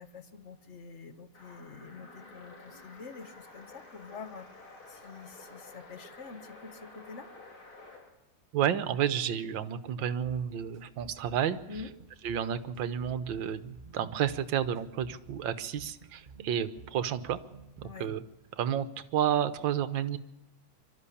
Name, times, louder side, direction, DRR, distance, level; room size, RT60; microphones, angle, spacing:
voice 1, 0.0-7.3 11.7-11.9 17.8-18.1, left 5 dB, 40° left, 9 dB, 1.3 m, -47 dB
sound 1, 1.3-8.1, left 3 dB, 75° left, 4.3 m, -51 dB
voice 2, 8.5-11.6 12.2-17.4 17.8-18.2 18.6-18.9 19.1-20.2, right 9 dB, 65° right, 11 dB, 1.7 m, -31 dB
sound 2, 10.2-18.3, right 5 dB, 30° right, 1.0 m, -52 dB
25.0 x 13.0 x 8.5 m, 0.99 s
omnidirectional pair, 2.3 m